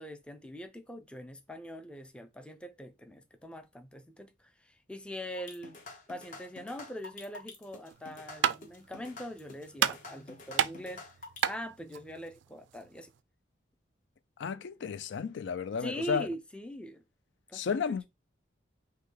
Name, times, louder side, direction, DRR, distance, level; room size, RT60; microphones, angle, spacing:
voice 1, 0.0-5.8 6.1-11.0 11.5-13.1 15.8-17.0 17.5-18.1, equal, 5° left, 0.4 m, -42 dB
sound 1, 5.3-11.5, left 3 dB, 45° left, 1.0 m, -48 dB
sound 2, 7.9-13.2, right 9 dB, 75° right, 0.3 m, -33 dB
voice 2, 14.4-16.3 17.5-18.0, left 6 dB, 75° left, 0.4 m, -33 dB
5.5 x 2.2 x 3.8 m
head